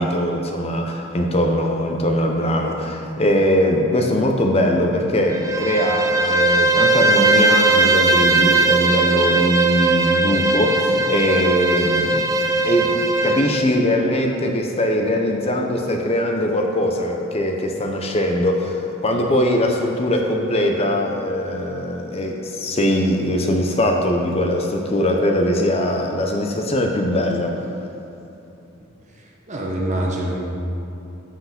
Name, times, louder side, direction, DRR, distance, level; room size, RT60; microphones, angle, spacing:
voice 1, 0.0-12.3 12.6-27.6, left 1 dB, 30° left, 2 dB, 0.6 m, -21 dB
Bowed string instrument, 5.3-13.6, right 3 dB, 15° right, 0.4 m, -18 dB
voice 2, 29.2-30.4, right 1 dB, 35° right, -1 dB, 1.2 m, -25 dB
8.1 x 5.7 x 5.8 m, 2.9 s
head